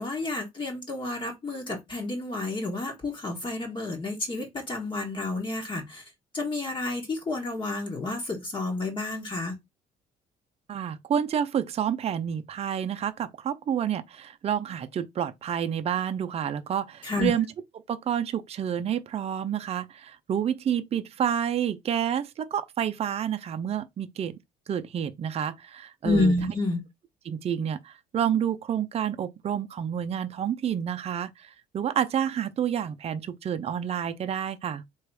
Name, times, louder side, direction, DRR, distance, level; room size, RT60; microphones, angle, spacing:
voice 1, 0.0-9.6 17.0-17.3 26.0-26.8, left 2 dB, 30° left, 1.5 m, -30 dB
voice 2, 10.7-17.5 17.9-24.4 24.7-26.3 27.3-34.8, right 9 dB, 40° right, 0.5 m, -29 dB
3.2 x 3.0 x 4.7 m
cardioid pair, 110°, 17 cm